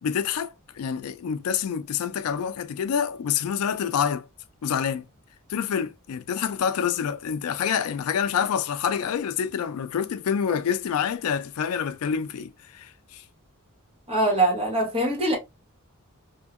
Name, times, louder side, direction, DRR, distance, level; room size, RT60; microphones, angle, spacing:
voice 1, 0.0-4.3 4.6-5.1 5.5-13.2, left 7 dB, 75° left, 0.4 m, -27 dB
voice 2, 14.1-15.4, right 1 dB, 25° right, 1.1 m, -23 dB
2.8 x 2.6 x 2.4 m
head